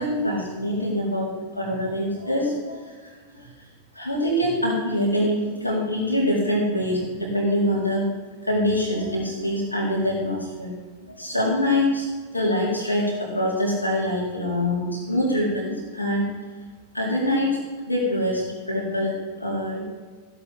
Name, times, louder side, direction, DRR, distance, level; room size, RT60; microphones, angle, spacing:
voice 1, 0.0-3.5 3.9-8.1 8.4-10.7 11.1-12.1 12.3-16.3 16.9-17.6 17.9-19.1 19.4-19.9, left 1 dB, 85° left, -3 dB, 4.2 m, -24 dB
15.5 x 8.4 x 4.6 m, 1.4 s
figure-of-eight pair, 90°, 0 cm